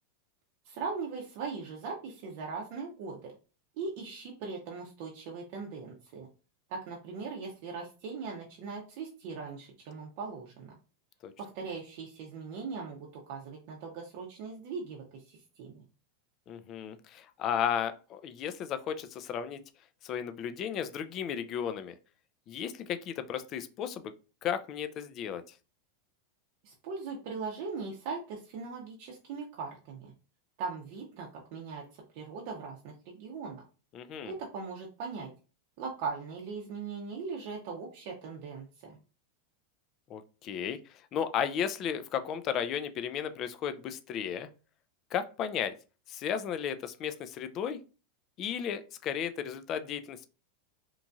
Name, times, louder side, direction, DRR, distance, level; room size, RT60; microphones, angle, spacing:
voice 1, 0.6-3.3 3.8-6.3 6.7-10.7 11.4-15.8 26.6-30.1 30.6-33.6 34.2-35.3 35.8-39.0, right 5 dB, 60° right, -1 dB, 0.6 m, -40 dB
voice 2, 16.5-19.6 20.0-21.9 22.5-24.1 24.4-25.4 33.9-34.3 40.1-40.8 41.1-44.5 45.1-45.7 46.1-47.8 48.4-50.3, left 8 dB, 40° left, 11 dB, 0.3 m, -34 dB
3.0 x 2.5 x 2.3 m, 0.35 s
hypercardioid pair, 115°, 0 cm